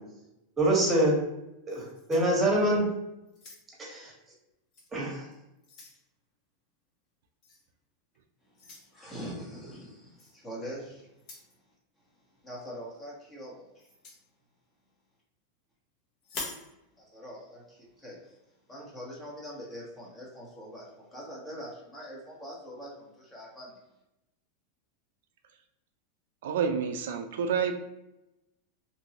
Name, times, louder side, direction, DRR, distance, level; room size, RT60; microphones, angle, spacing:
voice 1, 0.6-1.2 1.7-2.8 3.8-4.1 4.9-5.3, right 1 dB, 20° right, -2 dB, 1.2 m, -25 dB
sound 1, 1.7-2.8 3.3-3.9 4.7-4.9 5.3-6.0 7.4-7.6 8.5-8.9 10.2-10.4 11.1-11.5 13.8-14.2 16.2-16.7, left 3 dB, 45° left, 1.0 m, -44 dB
voice 2, 8.9-11.1 12.4-13.6 17.1-18.2 18.7-23.7, equal, 20° left, -3 dB, 1.1 m, -43 dB
voice 3, 26.4-27.7, right 6 dB, 75° right, 6 dB, 0.3 m, -28 dB
3.0 x 2.5 x 2.8 m, 0.92 s
hypercardioid pair, 120°, 0 cm